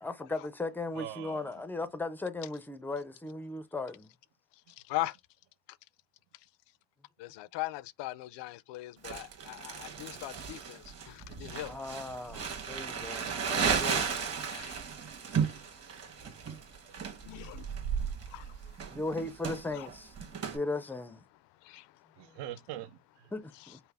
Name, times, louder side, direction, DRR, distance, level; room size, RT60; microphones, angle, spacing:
voice 1, 0.0-4.1 11.6-14.0 18.9-20.1 20.5-21.2 22.2-22.3 23.3-23.8, left 2 dB, 5° left, 0.4 m, -37 dB
voice 2, 1.0-1.4 14.8-15.1 15.9-16.4 17.6-17.7 22.2-23.3, right 12 dB, 80° right, 0.7 m, -44 dB
voice 3, 4.8-5.2 7.2-11.7 13.4-13.5 14.5-14.8 15.5-15.6 17.2-17.7 18.3-18.5 19.7-19.9 21.6-21.9, left 17 dB, 85° left, 0.5 m, -39 dB
Crumpling crinkling, 9.0-20.6, right 6 dB, 35° right, 1.3 m, -35 dB
5.6 x 2.0 x 3.4 m
cardioid pair, 140°, 41 cm